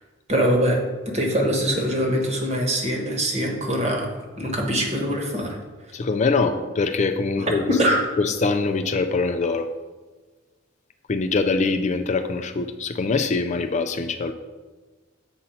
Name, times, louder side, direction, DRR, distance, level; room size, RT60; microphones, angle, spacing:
voice 1, 0.3-0.8 1.0-4.1 4.4-5.6 6.4-6.5 7.4-8.0, equal, 35° right, 1 dB, 1.3 m, -23 dB
voice 2, 5.9-7.7 8.2-9.7 11.1-14.3, left 4 dB, 35° left, 8 dB, 0.4 m, -23 dB
7.7 x 4.1 x 5.7 m, 1.3 s
head